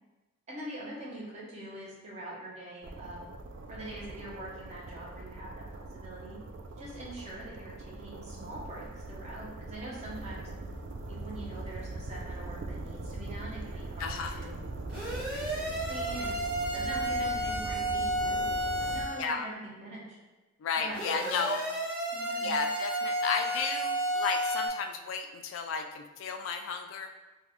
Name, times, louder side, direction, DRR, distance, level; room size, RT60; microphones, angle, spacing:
voice 1, 0.5-3.2 3.7-6.4 6.8-10.5 11.1-14.6 15.1-16.4 16.7-20.2 20.8-21.5 22.1-22.6, right 1 dB, 35° right, -5 dB, 0.8 m, -43 dB
sound 1, 2.8-19.1, right 2 dB, 60° right, 0.3 m, -41 dB
voice 2, 14.0-14.4 19.2-19.5 20.6-21.6 22.4-27.1, left 5 dB, 70° left, 5 dB, 0.3 m, -33 dB
sound 2, 14.9-19.2 20.9-24.7, right 1 dB, 5° right, 1.3 m, -32 dB
3.6 x 2.3 x 3.0 m, 1.2 s
head